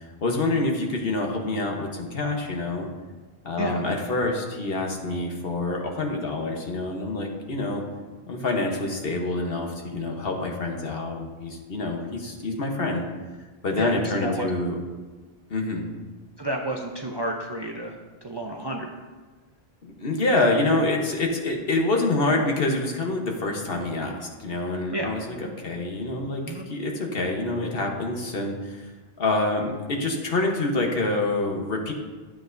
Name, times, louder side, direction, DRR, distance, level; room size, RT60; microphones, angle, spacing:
voice 1, 0.2-2.9 3.4-7.8 8.3-13.0 13.6-14.7 15.5-15.8 19.8-28.9 29.2-31.9, left 2 dB, 65° left, 1 dB, 1.3 m, -26 dB
voice 2, 3.6-3.9 13.7-14.7 16.4-18.9 24.9-25.2 26.4-26.7, right 1 dB, 30° right, 1 dB, 0.6 m, -31 dB
12.0 x 7.5 x 2.6 m, 1.3 s
omnidirectional pair, 1.1 m